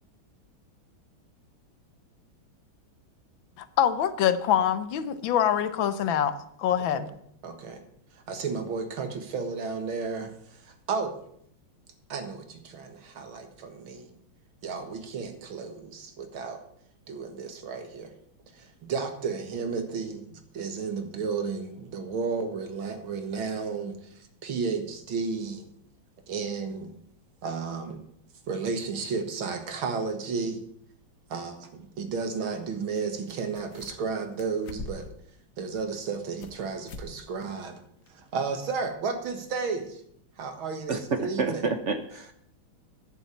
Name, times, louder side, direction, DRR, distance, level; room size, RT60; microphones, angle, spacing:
voice 1, 3.6-7.1, left 9 dB, 75° left, 12 dB, 1.5 m, -25 dB
voice 2, 7.4-7.8 8.1-11.3 12.1-14.1 14.6-16.6 17.1-18.1 18.5-25.7 26.3-26.9 27.4-28.0 28.5-30.6 31.3-35.1 35.6-37.8 38.1-40.0 40.4-41.6, right 5 dB, 80° right, 6 dB, 2.3 m, -33 dB
sound 1, 32.9-33.0 33.3-34.1 34.4-35.2 35.7-36.6 36.9-37.1 37.4-37.5 38.1-38.2, left 2 dB, 55° left, 1.6 m, -42 dB
voice 3, 40.9-42.3, right 4 dB, 50° right, 8 dB, 0.9 m, -29 dB
10.5 x 7.1 x 8.4 m, 0.68 s
omnidirectional pair, 2.2 m